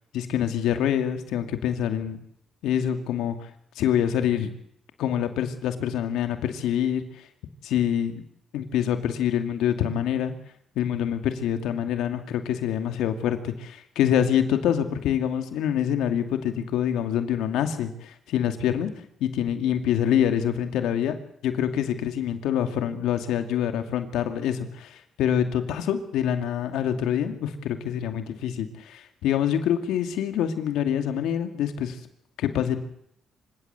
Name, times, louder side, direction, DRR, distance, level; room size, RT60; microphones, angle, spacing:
voice 1, 0.1-2.2 2.6-3.5 3.8-4.5 5.0-7.3 7.6-8.2 8.5-10.3 10.8-18.9 19.2-21.2 21.4-32.0 32.4-32.8, left 9 dB, 85° left, 7 dB, 2.5 m, -26 dB
26.0 x 17.0 x 8.3 m, 0.70 s
cardioid pair, 90°, 0 cm